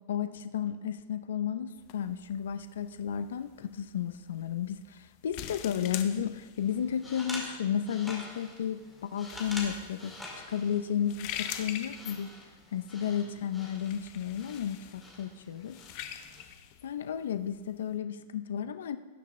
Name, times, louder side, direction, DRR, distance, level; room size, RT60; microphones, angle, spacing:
voice 1, 0.1-10.1 10.5-12.3 12.7-15.8 16.8-19.0, left 9 dB, 90° left, 11 dB, 0.5 m, -33 dB
sound 1, 1.8-18.0, left 11 dB, 45° left, 0.7 m, -45 dB
sound 2, 6.6-16.4, left 1 dB, 5° left, 1.8 m, -46 dB
17.5 x 6.7 x 3.2 m, 1.4 s
supercardioid pair, 155°, 0 cm